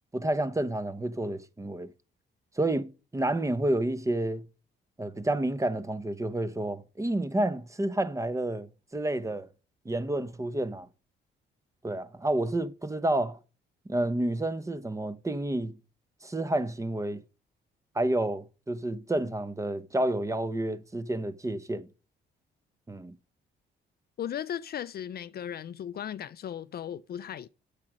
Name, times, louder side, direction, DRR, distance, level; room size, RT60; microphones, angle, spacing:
voice 1, 0.1-1.9 2.6-4.4 5.0-9.5 9.8-10.9 11.8-13.4 13.9-15.7 16.2-17.2 17.9-21.9 22.9-23.1, right 1 dB, 15° right, 0.9 m, -30 dB
voice 2, 24.2-27.5, left 9 dB, 50° left, 0.5 m, -36 dB
8.5 x 6.4 x 6.1 m
cardioid pair, 90°, 20 cm